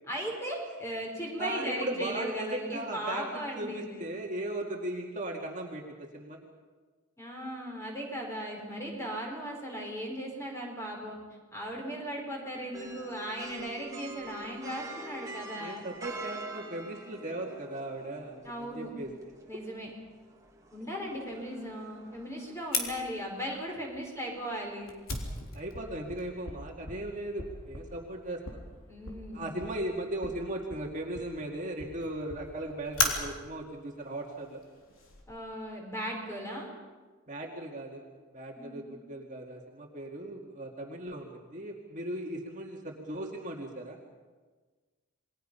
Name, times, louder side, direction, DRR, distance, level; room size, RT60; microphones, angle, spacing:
voice 1, 0.1-4.1 7.2-11.2 11.5-15.8 18.4-18.9 19.5-19.9 20.7-24.9 28.9-29.7 35.3-36.7 38.6-38.8, equal, 15° left, 0 dB, 4.9 m, -37 dB
voice 2, 1.4-5.8 6.1-6.4 15.6-19.1 21.3-21.4 25.5-28.4 29.3-34.6 37.3-38.0 38.3-44.0, right 1 dB, 35° right, 0 dB, 2.1 m, -37 dB
sound 1, 12.7-23.0, right 2 dB, 15° right, 2.2 m, -46 dB
Fire, 22.7-35.2, left 4 dB, 90° left, 3.6 m, -38 dB
28.0 x 21.5 x 5.6 m, 1.4 s
head